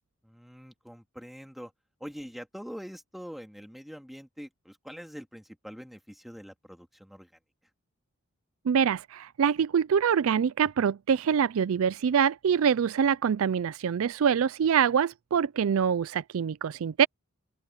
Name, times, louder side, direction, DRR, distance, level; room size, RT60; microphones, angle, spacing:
voice 1, 0.2-1.7 2.0-7.3, equal, ahead, 2.1 m, -44 dB
voice 2, 8.7-17.1, right 7 dB, 70° right, 0.4 m, -25 dB
open air
head